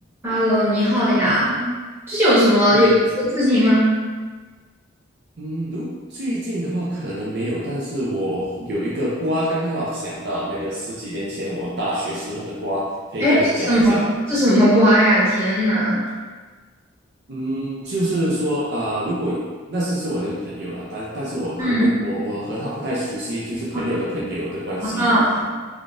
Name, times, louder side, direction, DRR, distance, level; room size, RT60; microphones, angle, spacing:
voice 1, 0.2-1.6 2.1-2.9 3.3-4.0 13.2-14.0 14.3-16.0 21.6-21.9 25.0-25.5, equal, 10° right, -12 dB, 1.2 m, -17 dB
voice 2, 2.7-3.0 5.4-12.8 13.1-14.0 17.3-19.4 19.7-25.1, equal, 55° right, -7 dB, 0.5 m, -26 dB
3.5 x 2.4 x 2.5 m, 1.4 s
head